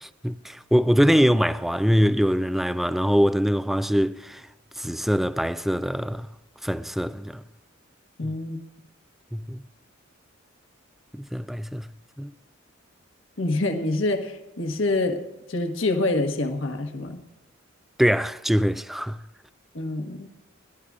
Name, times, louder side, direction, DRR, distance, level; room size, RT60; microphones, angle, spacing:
voice 1, 0.0-4.5 4.8-6.3 6.6-7.4 8.2-8.3 9.3-9.6 11.1-11.9 12.2-12.3 18.0-19.2, equal, ahead, 0.3 m, -23 dB
voice 2, 8.2-8.6 13.4-15.2 15.5-17.2 19.7-20.3, left 2 dB, 70° left, 1.4 m, -26 dB
21.5 x 11.5 x 2.4 m
head